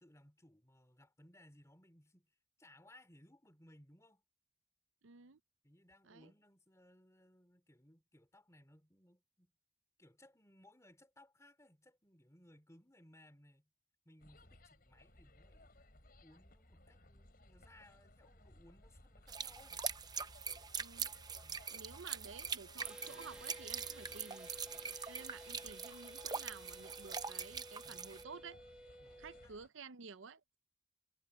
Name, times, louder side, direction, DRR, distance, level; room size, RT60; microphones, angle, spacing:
voice 1, 0.0-2.3 2.6-4.2 5.6-9.5 10.0-13.7 14.0-15.8 16.2-19.9 21.4-21.7 29.0-29.5, left 1 dB, 15° left, 3.5 m, -64 dB
voice 2, 5.0-5.4 6.0-6.3 20.8-21.1 21.7-24.5 25.1-28.6 29.2-30.6, right 5 dB, 75° right, 0.7 m, -53 dB
sound 1, 14.2-29.7, left 1 dB, 45° left, 5.2 m, -62 dB
sound 2, 19.3-28.2, right 6 dB, 20° right, 0.6 m, -43 dB
sound 3, 22.8-29.5, equal, 5° right, 1.3 m, -54 dB
head